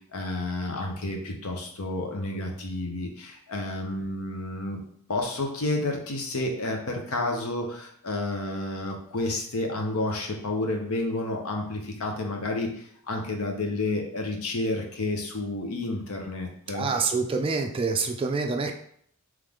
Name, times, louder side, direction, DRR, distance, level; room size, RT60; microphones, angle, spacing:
voice 1, 0.1-4.8 5.1-16.9, left 2 dB, 75° left, 2 dB, 0.8 m, -30 dB
voice 2, 16.7-18.7, right 4 dB, 25° right, 5 dB, 0.3 m, -26 dB
3.6 x 3.2 x 3.6 m, 0.65 s
head